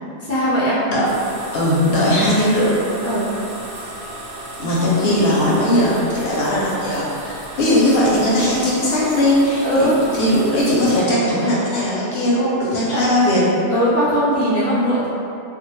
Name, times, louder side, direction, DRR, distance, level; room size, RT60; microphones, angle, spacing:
voice 1, 0.2-0.8 3.0-3.3 9.6-10.0 12.9-13.0 13.7-15.1, equal, 25° right, -11 dB, 0.3 m, -19 dB
sound 1, 1.0-11.0, right 1 dB, 70° right, 0.8 m, -34 dB
voice 2, 1.5-2.8 4.6-13.4, left 1 dB, 65° left, -6 dB, 0.7 m, -18 dB
2.2 x 2.1 x 3.0 m, 2.5 s
omnidirectional pair, 1.2 m